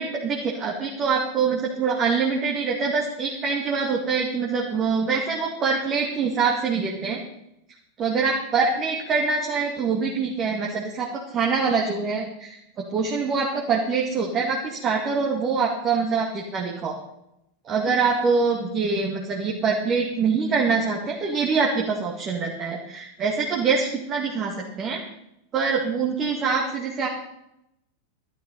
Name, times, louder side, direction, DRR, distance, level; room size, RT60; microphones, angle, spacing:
voice 1, 0.0-7.2 8.0-12.6 12.9-17.0 17.6-25.0 25.5-27.1, right 5 dB, 30° right, -2 dB, 2.2 m, -24 dB
12.5 x 11.0 x 5.5 m, 0.81 s
figure-of-eight pair, 90°, 0 cm